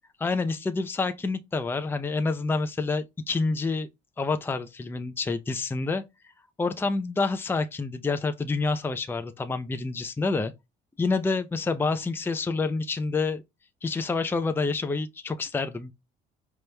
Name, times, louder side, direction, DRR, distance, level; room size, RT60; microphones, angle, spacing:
voice 1, 0.2-3.9 4.2-6.0 6.6-10.5 11.0-13.4 13.8-15.9, left 3 dB, 15° left, 0.5 m, -28 dB
5.0 x 3.0 x 2.2 m
cardioid pair, 110°, 17 cm